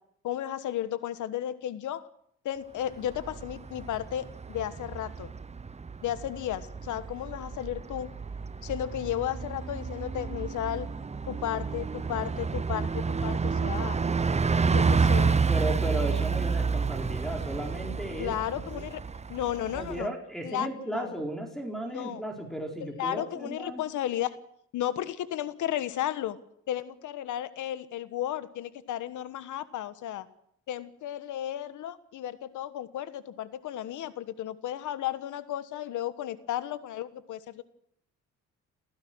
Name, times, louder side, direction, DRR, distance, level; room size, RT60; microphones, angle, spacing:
voice 1, 0.2-2.1 2.4-5.3 6.0-8.1 8.6-10.9 11.3-14.0 14.7-15.4 18.2-19.0 19.3-20.1 20.4-21.1 21.9-22.2 22.8-24.4 24.7-26.4 26.7-30.3 30.7-37.6, left 11 dB, 80° left, 14 dB, 1.4 m, -34 dB
Bus, 3.0-20.0, right 5 dB, 20° right, 0.8 m, -30 dB
voice 2, 15.5-18.8 19.7-23.8, right 1 dB, ahead, 0 dB, 4.5 m, -35 dB
28.0 x 15.0 x 6.3 m, 0.72 s
cardioid pair, 90°, 30 cm